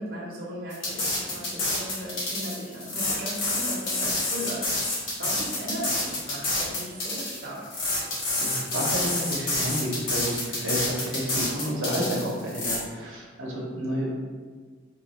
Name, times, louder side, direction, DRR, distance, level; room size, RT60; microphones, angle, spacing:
voice 1, 0.0-7.7, equal, 50° right, -6 dB, 0.7 m, -37 dB
sound 1, 0.7-12.8, left 2 dB, 75° left, 1.2 m, -28 dB
voice 2, 8.4-14.1, equal, 80° right, -4 dB, 0.8 m, -30 dB
4.4 x 2.4 x 3.0 m, 1.5 s
head